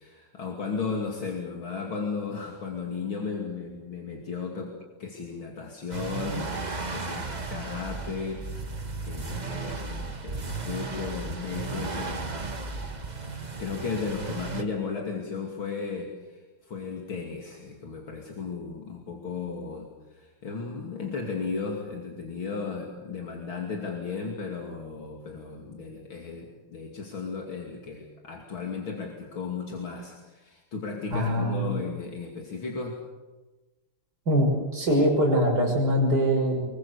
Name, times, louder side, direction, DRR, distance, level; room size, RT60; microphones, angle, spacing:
voice 1, 0.0-6.6 6.9-12.3 13.4-33.0, left 5 dB, 65° left, 0 dB, 3.4 m, -35 dB
sound 1, 5.9-14.6, right 3 dB, 25° right, 1.3 m, -35 dB
voice 2, 31.1-31.7 34.3-34.5 34.7-36.6, equal, 45° right, 1 dB, 6.7 m, -23 dB
25.0 x 23.5 x 7.1 m, 1.2 s
omnidirectional pair, 2.4 m